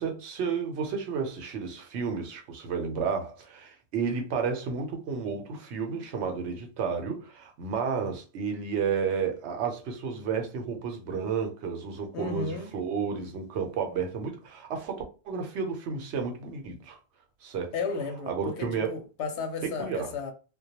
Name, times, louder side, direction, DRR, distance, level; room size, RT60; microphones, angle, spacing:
voice 1, 0.0-17.0 17.4-17.7 18.3-18.9 19.8-20.1, right 6 dB, 85° right, 0.9 m, -32 dB
voice 2, 12.1-12.7 17.7-20.3, left 4 dB, 90° left, 0.9 m, -33 dB
2.2 x 2.1 x 2.8 m
omnidirectional pair, 1.1 m